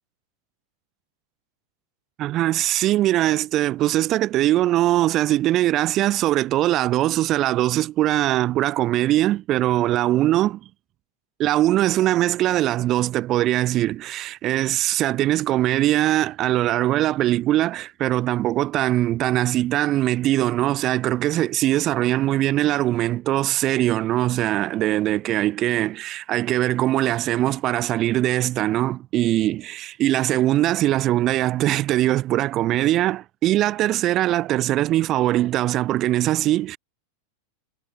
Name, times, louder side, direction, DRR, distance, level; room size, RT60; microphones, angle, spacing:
voice 1, 2.2-10.6 11.4-36.8, right 14 dB, 35° right, 0.5 m, -21 dB
figure-of-eight pair, 90°, 0 cm